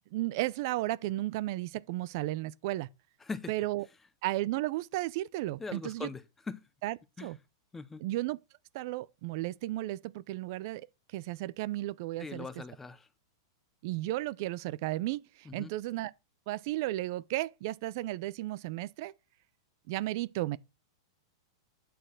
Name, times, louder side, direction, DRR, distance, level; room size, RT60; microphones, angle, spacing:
voice 1, 0.1-2.9 3.5-3.9 4.2-6.1 6.8-7.4 8.0-8.4 8.7-12.6 13.8-16.1 16.5-19.1 19.9-20.6, right 17 dB, 55° right, 0.5 m, -34 dB
voice 2, 3.2-3.5 5.6-6.6 7.2-7.3 7.7-8.0 12.2-13.1 15.4-15.7, left 4 dB, 10° left, 0.7 m, -41 dB
9.2 x 4.1 x 6.4 m
hypercardioid pair, 135°, 2 cm